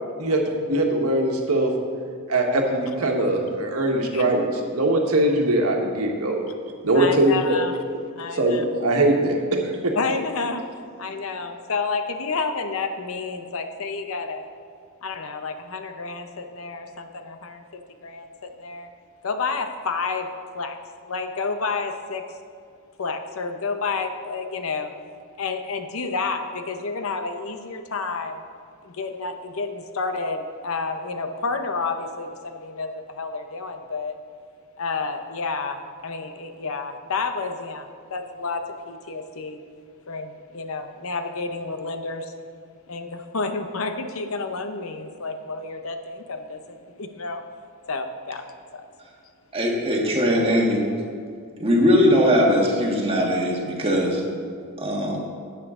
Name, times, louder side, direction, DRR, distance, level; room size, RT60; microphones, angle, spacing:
voice 1, 0.7-1.7 2.3-4.4 4.7-6.4 6.8-7.6 7.9-8.0 8.3-9.9, right 1 dB, 90° right, 1 dB, 1.4 m, -21 dB
voice 2, 6.9-7.8 8.2-8.6 9.9-10.6 11.0-14.5 15.0-17.6 18.0-18.9 19.2-20.3 20.5-20.8 21.0-22.2 23.0-24.9 25.4-28.5 28.8-34.1 34.8-39.6 40.1-42.3 42.9-47.4 47.9-48.4 48.7-48.8, left 4 dB, 70° left, 7 dB, 0.8 m, -30 dB
voice 3, 49.5-50.8 51.6-54.2 54.8-55.2, equal, 25° right, -1 dB, 1.5 m, -20 dB
11.5 x 8.5 x 3.7 m, 2.3 s
head